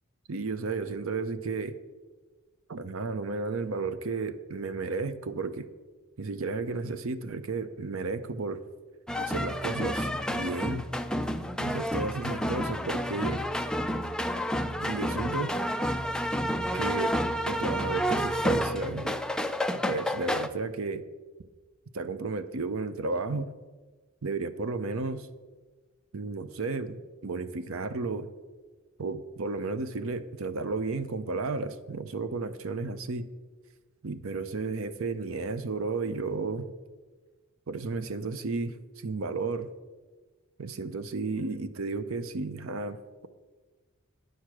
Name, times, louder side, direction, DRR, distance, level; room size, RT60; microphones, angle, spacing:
voice 1, 0.3-1.8 2.7-5.7 6.2-8.6 9.2-10.9 11.6-13.4 14.8-15.5 16.7-17.1 17.5-19.2 19.9-21.0 21.9-23.5 24.2-25.3 26.1-28.3 29.0-33.2 34.0-36.7 37.7-39.7 40.6-43.0, right 3 dB, 70° right, 12 dB, 0.7 m, -33 dB
sound 1, 9.1-20.5, equal, 5° left, 0.3 m, -30 dB
9.4 x 6.5 x 6.0 m, 1.3 s
head